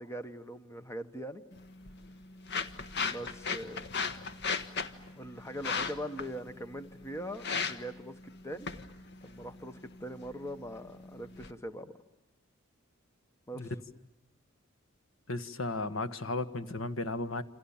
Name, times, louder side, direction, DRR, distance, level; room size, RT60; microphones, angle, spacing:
voice 1, 0.0-1.4 2.9-3.9 5.1-8.7 9.2-11.9 13.5-13.7, equal, 15° left, 10 dB, 1.3 m, -42 dB
sound 1, 1.5-11.5, left 5 dB, 60° left, 1.4 m, -38 dB
voice 2, 15.3-17.4, left 2 dB, 75° left, 12 dB, 1.6 m, -35 dB
28.5 x 28.0 x 7.3 m, 0.93 s
head